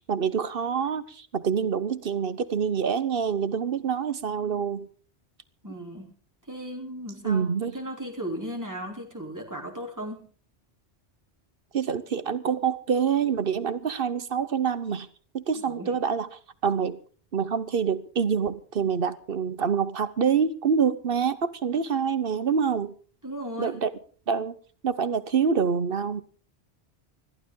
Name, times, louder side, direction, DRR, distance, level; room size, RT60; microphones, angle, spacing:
voice 1, 0.0-4.9 7.2-7.7 11.7-15.1 15.3-16.3 16.6-17.0 17.3-22.9 23.6-23.9 24.3-24.5 24.8-26.2, right 6 dB, 60° right, 1.1 m, -26 dB
voice 2, 5.6-6.1 6.5-10.3 15.5-16.0 23.2-23.8, equal, 15° right, 3.4 m, -36 dB
21.0 x 14.5 x 3.8 m
omnidirectional pair, 1.1 m